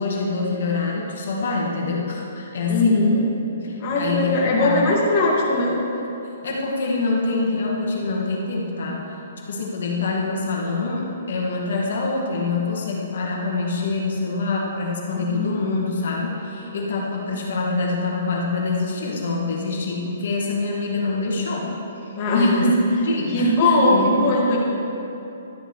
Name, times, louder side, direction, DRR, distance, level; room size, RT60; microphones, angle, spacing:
voice 1, 0.0-3.1 3.6-4.8 6.4-9.2 9.5-21.7 22.0-22.7 23.0-24.1 24.5-24.6, left 3 dB, 65° left, -2 dB, 1.8 m, -25 dB
voice 2, 2.7-3.2 3.8-5.8 15.2-15.6 22.2-22.8 23.3-24.6, left 1 dB, 30° left, -4 dB, 2.0 m, -19 dB
13.0 x 9.3 x 3.2 m, 2.9 s
hypercardioid pair, 170°, 0 cm